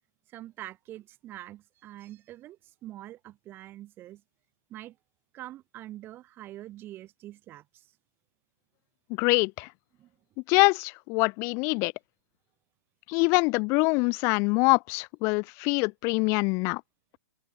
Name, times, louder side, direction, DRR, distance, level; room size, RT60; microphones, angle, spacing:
voice 1, 0.3-4.2 4.7-5.0 5.3-7.9 10.0-10.1, right 14 dB, 25° right, 7.3 m, -45 dB
voice 2, 9.2-9.7 10.5-11.9 13.1-16.8, left 30 dB, 30° left, 1.7 m, -24 dB
open air
figure-of-eight pair, 120°, 9 cm